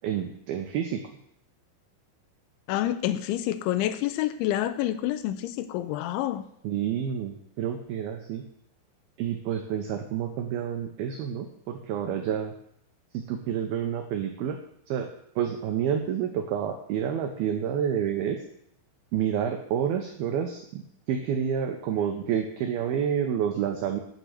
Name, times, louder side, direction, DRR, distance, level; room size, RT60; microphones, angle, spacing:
voice 1, 0.0-1.0 6.6-8.4 9.2-12.5 13.1-14.6 14.9-15.1 15.4-18.4 19.1-20.8 21.1-24.0, right 8 dB, 90° right, 5 dB, 2.1 m, -29 dB
voice 2, 2.7-6.4, left 13 dB, 80° left, 12 dB, 2.9 m, -28 dB
10.0 x 6.7 x 7.6 m, 0.72 s
omnidirectional pair, 5.5 m